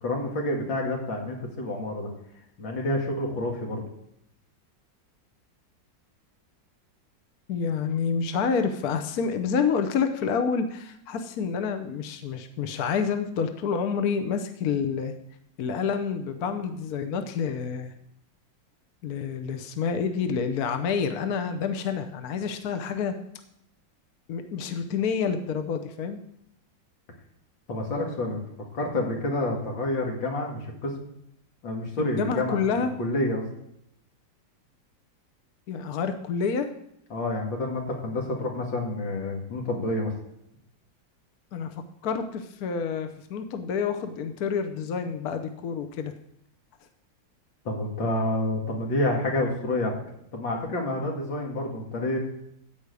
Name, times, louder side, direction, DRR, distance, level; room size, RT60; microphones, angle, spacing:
voice 1, 0.0-2.1 2.6-3.9 27.7-28.4 28.7-30.9 31.6-33.5 37.1-40.1 47.6-49.9 50.3-52.2, left 1 dB, 85° left, 0 dB, 2.9 m, -28 dB
voice 2, 7.5-15.1 15.6-17.9 19.0-23.1 24.3-26.2 32.0-32.9 35.7-36.7 41.5-41.7 42.0-46.1, left 6 dB, 60° left, 8 dB, 1.3 m, -28 dB
14.0 x 5.0 x 8.3 m, 0.76 s
omnidirectional pair, 2.0 m